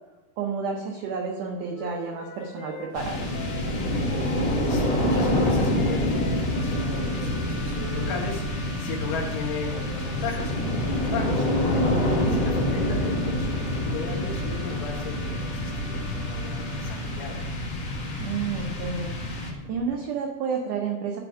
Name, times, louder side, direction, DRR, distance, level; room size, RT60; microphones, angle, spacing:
voice 1, 0.4-3.3 12.1-12.4 18.2-21.2, right 5 dB, 90° right, 1 dB, 1.7 m, -31 dB
Wind instrument woodwind instrument, 1.7-8.2, left 6 dB, 45° left, 2.4 m, -43 dB
sound 1, 2.9-19.9, left 1 dB, 85° left, 1.0 m, -27 dB
voice 2, 4.6-17.4, left 4 dB, 60° left, -1 dB, 2.8 m, -36 dB
Wind instrument woodwind instrument 2, 6.4-17.1, equal, 15° left, 1.1 m, -45 dB
9.5 x 3.5 x 7.0 m, 1.1 s
omnidirectional pair, 4.6 m